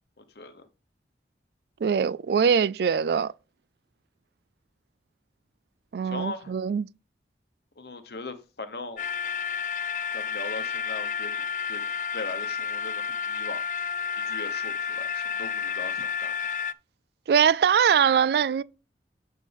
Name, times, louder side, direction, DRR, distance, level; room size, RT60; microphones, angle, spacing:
voice 1, 0.2-0.7 6.0-6.5 7.8-9.0 10.1-11.8 12.1-16.3, left 3 dB, 65° left, 1.1 m, -40 dB
voice 2, 1.8-3.3 5.9-6.9 17.3-18.6, right 7 dB, 60° right, 0.3 m, -22 dB
sound 1, 9.0-16.7, left 7 dB, 45° left, 0.3 m, -31 dB
8.1 x 6.4 x 3.4 m
head